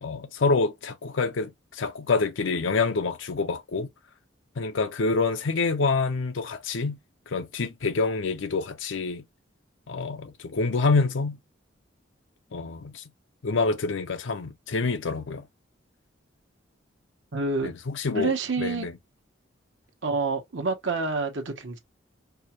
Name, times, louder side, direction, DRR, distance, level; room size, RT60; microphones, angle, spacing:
voice 1, 0.0-3.9 4.6-7.0 7.3-9.2 9.9-11.4 12.5-13.0 13.4-15.5 17.6-18.9, left 4 dB, 90° left, 0.6 m, -27 dB
voice 2, 17.3-17.7 18.1-18.9 20.0-21.8, right 3 dB, 80° right, 1.0 m, -28 dB
4.7 x 2.2 x 3.0 m
head